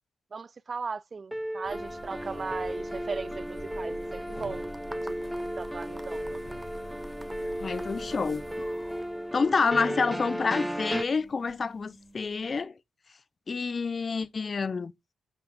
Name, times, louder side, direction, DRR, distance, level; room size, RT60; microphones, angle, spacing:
voice 1, 0.3-5.2 5.6-6.4 9.9-10.2, right 4 dB, 45° right, 0.4 m, -38 dB
sound 1, 1.3-11.0, equal, 5° right, 0.7 m, -35 dB
sound 2, 1.6-12.6, left 1 dB, 25° left, 2.1 m, -47 dB
sound 3, 4.4-8.8, right 2 dB, 20° right, 1.0 m, -48 dB
voice 2, 7.6-8.6 9.3-12.7 13.5-14.9, left 4 dB, 45° left, 0.7 m, -28 dB
8.0 x 5.3 x 4.1 m
hypercardioid pair, 40°, 0 cm